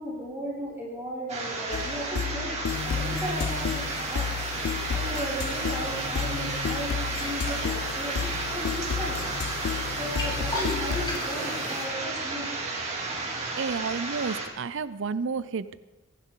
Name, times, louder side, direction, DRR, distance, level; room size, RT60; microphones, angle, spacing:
voice 1, 0.0-2.5 2.8-4.3 4.6-9.3 9.9-12.5, equal, 10° right, -8 dB, 6.0 m, -36 dB
sound 1, 1.3-14.5, right 3 dB, 35° right, 2.7 m, -32 dB
sound 2, 1.7-11.2, left 7 dB, 75° left, 0.4 m, -33 dB
sound 3, 2.7-11.8, left 1 dB, 20° left, 4.8 m, -38 dB
voice 2, 13.6-15.8, right 5 dB, 65° right, 15 dB, 0.5 m, -31 dB
26.0 x 11.5 x 3.9 m, 1.1 s
head